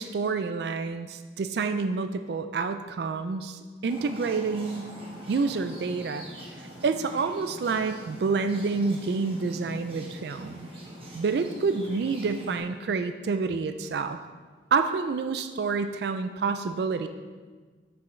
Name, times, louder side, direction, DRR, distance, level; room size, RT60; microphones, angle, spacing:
voice 1, 0.0-4.9 5.3-6.3 6.8-10.7 11.1-14.2 14.7-17.1, right 4 dB, 60° right, 9 dB, 0.3 m, -28 dB
sound 1, 3.9-12.6, equal, 30° right, 1.3 m, -44 dB
8.4 x 6.1 x 3.2 m, 1.4 s
head